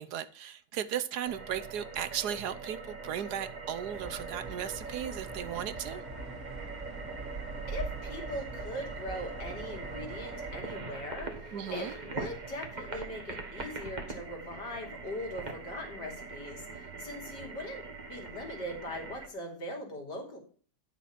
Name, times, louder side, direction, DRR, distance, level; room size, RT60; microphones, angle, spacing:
voice 1, 0.0-6.0 11.5-11.9, right 9 dB, 70° right, 1.2 m, -36 dB
sound 1, 1.3-19.3, right 4 dB, 25° right, 1.4 m, -42 dB
sound 2, 3.9-10.6, right 3 dB, 45° right, 2.3 m, -43 dB
voice 2, 7.7-20.4, left 1 dB, 75° left, 3.4 m, -41 dB
11.0 x 6.1 x 5.8 m
omnidirectional pair, 1.9 m